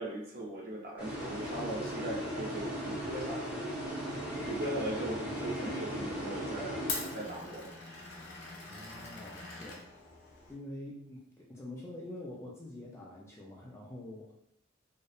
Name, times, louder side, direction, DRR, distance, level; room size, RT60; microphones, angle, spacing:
voice 1, 0.0-3.5 4.4-6.9 7.1-7.7, right 1 dB, 45° right, -3 dB, 0.6 m, -39 dB
sound 1, 1.0-7.7, equal, 10° right, 0.9 m, -38 dB
Glass, 4.3-10.5, left 3 dB, 70° left, 0.5 m, -44 dB
voice 2, 4.7-5.3 8.7-9.8 10.5-14.3, left 1 dB, 15° left, -3 dB, 0.3 m, -46 dB
2.7 x 2.0 x 2.4 m, 0.71 s
head